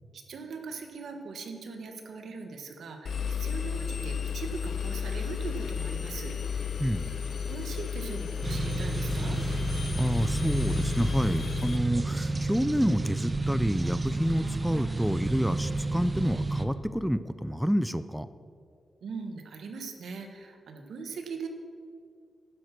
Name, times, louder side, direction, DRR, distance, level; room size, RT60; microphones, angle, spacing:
voice 1, 0.1-6.7 7.5-9.4 19.0-21.5, right 4 dB, 85° right, 5 dB, 1.5 m, -40 dB
Engine, 3.0-11.8, left 7 dB, 65° left, 1.0 m, -33 dB
voice 2, 6.8-7.2 10.0-18.3, equal, ahead, 13 dB, 0.4 m, -28 dB
sound 1, 8.4-16.6, right 3 dB, 25° right, 0.8 m, -31 dB
11.5 x 11.0 x 6.0 m, 2.3 s
wide cardioid pair, 130°, 0 cm